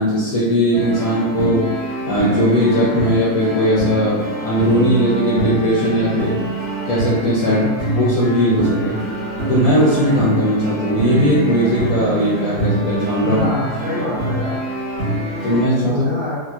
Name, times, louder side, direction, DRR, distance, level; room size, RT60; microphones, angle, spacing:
voice 1, 0.0-6.5 6.9-7.6 7.9-9.0 9.5-13.4 15.4-16.0, equal, 65° left, -8 dB, 0.9 m, -18 dB
sound 1, 0.7-15.6, right 2 dB, 40° right, 1.3 m, -24 dB
voice 2, 7.4-7.8 13.2-14.6 15.8-16.4, left 2 dB, 80° right, -9 dB, 1.8 m, -25 dB
3.2 x 2.7 x 2.3 m, 1.3 s
omnidirectional pair, 1.8 m